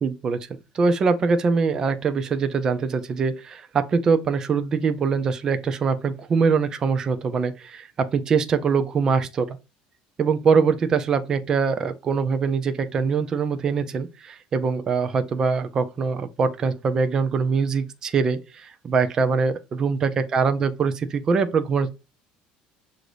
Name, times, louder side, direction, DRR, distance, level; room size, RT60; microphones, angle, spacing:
voice 1, 0.0-0.5 0.7-9.6 10.2-21.9, right 5 dB, 20° right, 0.5 m, -23 dB
7.4 x 2.6 x 4.9 m
cardioid pair, 180°, 3 cm